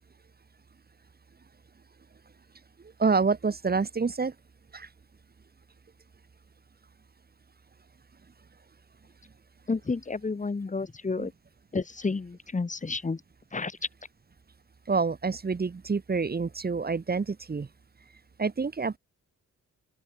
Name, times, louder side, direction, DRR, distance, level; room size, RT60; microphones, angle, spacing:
voice 1, 3.0-4.3 4.7-4.9 11.2-11.3 14.9-17.7 18.4-19.0, right 4 dB, 30° right, 2.8 m, -27 dB
voice 2, 9.7-11.3 11.7-13.2 13.5-13.8, left 4 dB, 25° left, 2.7 m, -31 dB
open air
wide cardioid pair, 135°, 29 cm